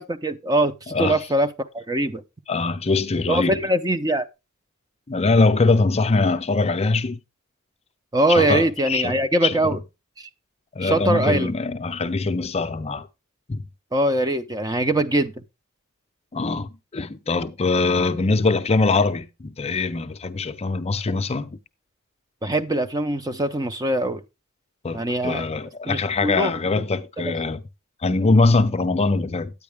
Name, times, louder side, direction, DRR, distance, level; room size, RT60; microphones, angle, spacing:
voice 1, 0.0-2.2 3.3-4.3 8.1-9.8 10.2-10.3 10.8-11.5 13.9-15.3 22.4-24.2 24.9-25.5 25.9-26.8 27.3-27.4, right 1 dB, 15° right, 0.6 m, -22 dB
voice 2, 0.9-1.2 2.5-3.6 5.1-7.2 8.3-9.1 9.4-9.8 10.8-13.1 13.5-13.6 16.3-21.6 24.8-27.6 28.0-29.5, left 3 dB, 30° left, 0.6 m, -22 dB
9.4 x 9.3 x 3.4 m
head